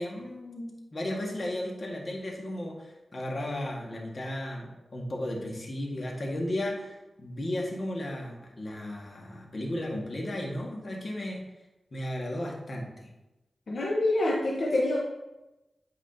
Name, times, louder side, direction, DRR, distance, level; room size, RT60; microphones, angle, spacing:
voice 1, 0.0-11.5 11.9-13.1, left 1 dB, 45° left, -2 dB, 1.7 m, -35 dB
voice 2, 13.7-15.0, left 1 dB, 70° left, -4 dB, 1.0 m, -26 dB
8.8 x 4.9 x 2.8 m, 1.0 s
cardioid pair, 60°, 0 cm